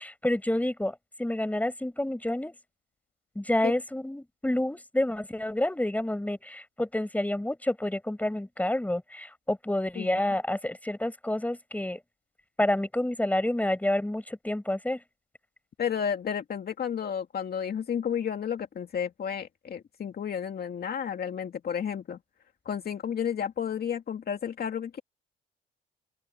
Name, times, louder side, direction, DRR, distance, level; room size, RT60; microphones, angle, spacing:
voice 1, 0.0-2.5 3.4-12.0 12.6-15.0, left 1 dB, 5° left, 5.5 m, -29 dB
voice 2, 15.8-22.2 22.7-25.0, left 8 dB, 50° left, 2.2 m, -32 dB
open air
cardioid pair, 90°, 20 cm